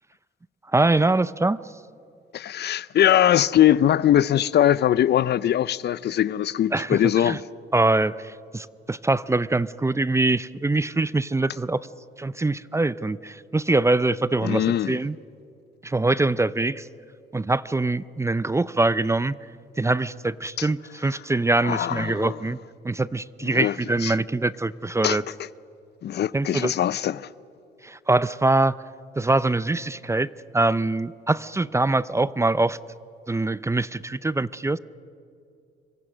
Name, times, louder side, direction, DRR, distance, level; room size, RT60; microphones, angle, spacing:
voice 1, 0.7-1.6 6.7-7.4 7.7-11.9 12.2-15.2 15.8-16.9 17.3-19.3 19.8-22.6 22.8-25.2 26.3-26.7 27.8-28.8 29.2-30.3 30.5-32.8 33.3-34.8, right 2 dB, 15° right, 0.5 m, -23 dB
voice 2, 2.3-7.4 14.4-15.0 20.6-20.7 21.6-22.4 23.4-23.7 24.0-24.1 25.0-25.2 26.0-27.3, left 11 dB, 60° left, 0.6 m, -21 dB
27.0 x 23.5 x 6.2 m
cardioid pair, 90°, 20 cm